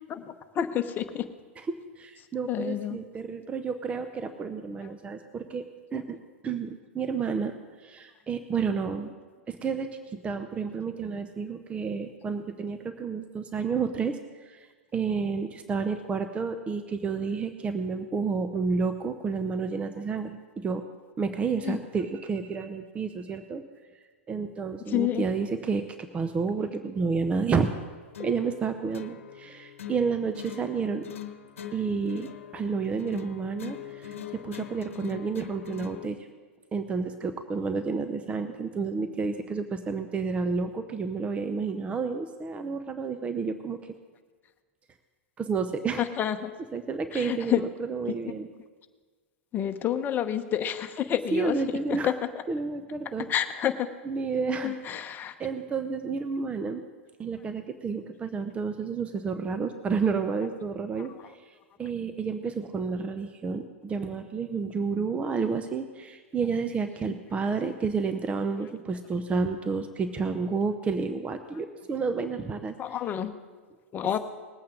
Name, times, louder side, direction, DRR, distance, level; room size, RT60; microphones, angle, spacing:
voice 1, 0.1-1.2 2.5-3.0 21.6-21.8 24.9-25.2 46.0-46.5 47.1-47.6 49.5-52.1 53.3-53.9 54.6-55.3 67.0-67.1 72.8-73.3 73.9-74.2, left 10 dB, 25° left, 8 dB, 0.9 m, -29 dB
voice 2, 1.6-5.7 5.9-6.2 6.4-9.1 9.5-20.8 21.2-23.6 24.3-27.7 28.2-31.1 31.7-34.2 34.4-36.2 36.7-43.8 45.4-46.1 46.7-48.5 51.3-52.1 52.5-53.3 54.0-55.0 55.4-56.8 57.2-72.8, right 5 dB, 15° right, 9 dB, 0.7 m, -30 dB
sound 1, 28.1-36.1, left 10 dB, 80° left, 1.0 m, -42 dB
20.5 x 8.6 x 3.8 m, 1.4 s
hypercardioid pair, 115°, 7 cm